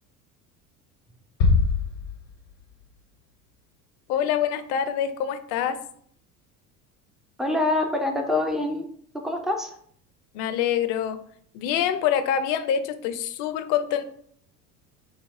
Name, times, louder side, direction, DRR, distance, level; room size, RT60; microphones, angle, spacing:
sound 1, 1.4-3.0, left 4 dB, 75° left, 0.9 m, -24 dB
voice 1, 4.1-5.8 10.3-11.2 11.5-14.0, left 9 dB, 50° left, 10 dB, 0.6 m, -25 dB
voice 2, 7.4-8.9 9.2-9.8, left 2 dB, ahead, 2 dB, 0.3 m, -25 dB
5.2 x 2.0 x 3.5 m, 0.62 s
hypercardioid pair, 70°, 49 cm